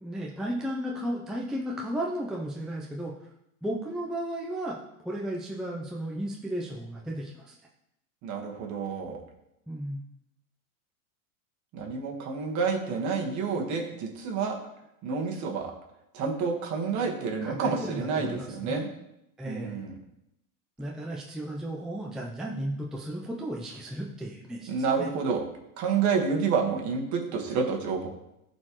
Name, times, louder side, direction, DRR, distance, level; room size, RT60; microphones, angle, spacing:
voice 1, 0.0-3.1 3.6-4.8 5.0-7.5 9.7-10.0 17.4-18.8 19.4-19.8 20.8-24.7 25.0-25.1, right 1 dB, ahead, -2 dB, 0.5 m, -34 dB
voice 2, 8.2-9.2 11.7-14.6 15.0-15.7 16.1-18.9 19.4-19.9 24.7-25.4 25.8-28.1, right 5 dB, 40° right, 2 dB, 1.6 m, -29 dB
13.5 x 4.5 x 3.1 m, 0.84 s
supercardioid pair, 130°, 43 cm